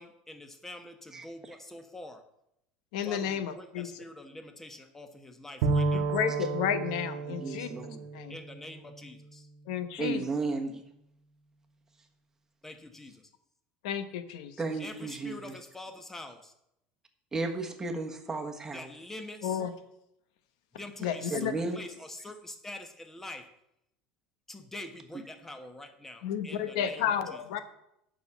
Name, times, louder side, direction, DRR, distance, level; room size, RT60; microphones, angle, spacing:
voice 1, 0.0-2.2 3.0-6.1 8.3-9.5 12.6-13.3 14.8-16.5 18.7-19.6 20.7-23.5 24.5-27.4, left 1 dB, 10° left, 8 dB, 1.1 m, -45 dB
voice 2, 2.9-3.9 5.9-7.7 8.1-8.4 9.7-10.2 13.8-14.6 19.4-19.7 21.0-21.5 26.2-27.6, left 9 dB, 85° left, 11 dB, 0.9 m, -32 dB
Bowed string instrument, 5.6-9.3, right 3 dB, 75° right, 1.2 m, -32 dB
voice 3, 7.4-8.1 10.0-10.8 14.6-15.6 17.3-18.9 21.3-21.8, right 3 dB, 15° right, 4 dB, 1.3 m, -34 dB
8.3 x 6.2 x 8.1 m, 0.80 s
supercardioid pair, 140°, 4 cm